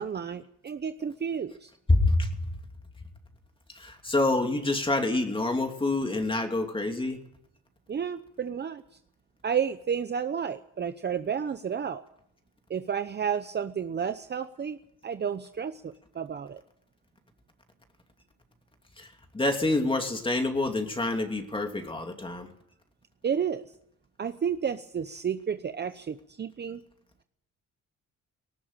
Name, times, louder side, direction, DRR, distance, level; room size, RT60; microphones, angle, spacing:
voice 1, 0.0-1.7 7.9-8.8 9.4-12.0 12.7-14.8 15.0-16.6 23.2-23.7 24.2-26.8, right 7 dB, 35° right, 10 dB, 0.8 m, -31 dB
voice 2, 1.9-2.3 3.7-7.2 19.0-19.1 19.3-22.5, left 2 dB, 15° left, 4 dB, 2.8 m, -27 dB
19.0 x 18.5 x 9.0 m, 0.71 s
cardioid pair, 130°, 31 cm